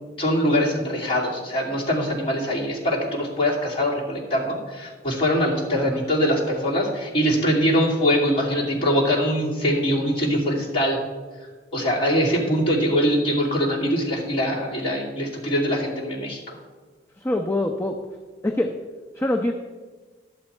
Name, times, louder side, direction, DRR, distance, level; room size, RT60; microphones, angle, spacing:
voice 1, 0.2-11.0 11.7-16.6, equal, 30° left, -5 dB, 2.5 m, -23 dB
voice 2, 17.2-18.0 18.4-18.7 19.2-19.5, left 1 dB, 15° left, 3 dB, 0.5 m, -24 dB
11.5 x 8.0 x 4.3 m, 1.4 s
head